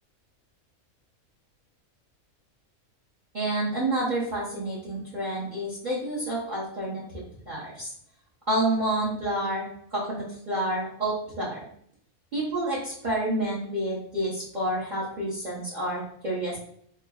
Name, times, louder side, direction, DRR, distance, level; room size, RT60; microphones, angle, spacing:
voice 1, 3.3-7.0 7.5-7.9 8.5-11.6 12.3-16.6, right 1 dB, 40° right, -7 dB, 0.8 m, -29 dB
5.9 x 2.1 x 2.3 m, 0.67 s
omnidirectional pair, 1.5 m